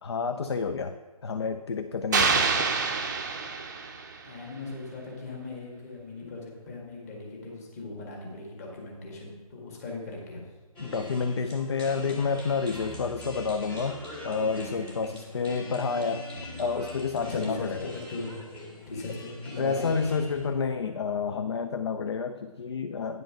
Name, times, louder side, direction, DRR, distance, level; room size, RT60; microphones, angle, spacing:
voice 1, 0.0-1.0 1.2-2.7 10.8-16.3 16.6-17.9 19.6-23.2, left 5 dB, 45° left, 8 dB, 0.4 m, -29 dB
sound 1, 2.1-4.3, right 4 dB, 30° right, 0.6 m, -26 dB
voice 2, 3.8-10.4 17.2-18.4 18.9-20.1, left 3 dB, 25° left, -1 dB, 1.7 m, -39 dB
sound 2, 10.8-20.5, left 1 dB, 5° left, 0.7 m, -42 dB
9.3 x 5.0 x 5.8 m, 1.3 s
figure-of-eight pair, 155°, 19 cm